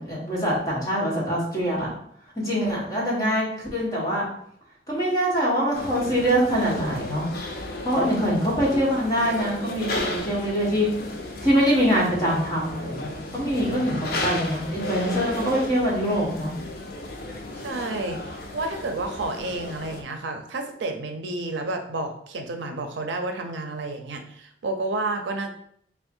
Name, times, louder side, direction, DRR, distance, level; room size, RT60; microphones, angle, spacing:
voice 1, 0.0-1.9 2.4-4.3 4.9-7.2 7.8-10.9 11.4-16.5, equal, 20° left, -5 dB, 1.2 m, -24 dB
sound 1, 5.7-20.0, left 2 dB, 55° left, 0.5 m, -34 dB
voice 2, 17.6-25.5, right 2 dB, 85° right, 5 dB, 0.5 m, -30 dB
3.5 x 2.1 x 4.3 m, 0.66 s
head